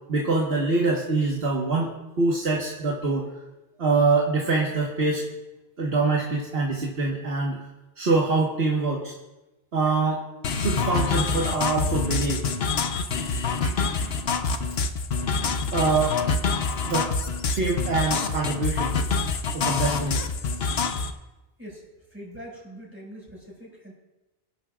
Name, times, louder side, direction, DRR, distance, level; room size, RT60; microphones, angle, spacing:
voice 1, 0.1-1.9 2.2-3.2 3.8-5.2 5.8-7.6 8.0-9.1 9.7-10.2 10.5-12.4 13.8-14.1 15.7-16.2 16.6-17.1 17.5-19.0 19.5-20.2, right 3 dB, 70° right, -2 dB, 1.7 m, -24 dB
sound 1, 10.4-21.1, left 4 dB, 75° left, 1.0 m, -26 dB
voice 2, 22.1-23.9, equal, 10° right, -4 dB, 5.5 m, -42 dB
23.5 x 12.0 x 2.5 m, 1.0 s
omnidirectional pair, 1.1 m